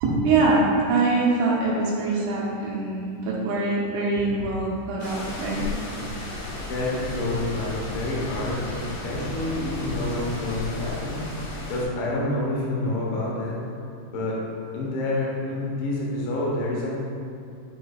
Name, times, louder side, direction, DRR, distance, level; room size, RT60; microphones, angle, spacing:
voice 1, 0.0-5.7, right 3 dB, 85° right, -4 dB, 3.2 m, -23 dB
sound 1, 5.0-11.9, left 1 dB, 65° left, 2.4 m, -34 dB
voice 2, 6.7-11.2 11.7-13.6 14.1-14.4 14.7-17.0, left 2 dB, 85° left, -4 dB, 3.5 m, -28 dB
7.9 x 6.6 x 2.4 m, 2.6 s
omnidirectional pair, 5.2 m